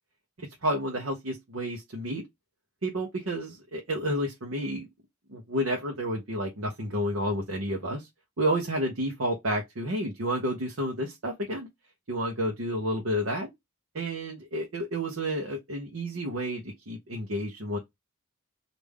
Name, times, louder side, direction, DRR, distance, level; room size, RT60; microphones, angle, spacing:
voice 1, 0.4-2.2 2.8-4.9 5.3-8.1 8.4-11.7 12.1-13.5 13.9-17.8, equal, 65° right, 0.8 m, -30 dB
3.3 x 2.5 x 3.5 m
head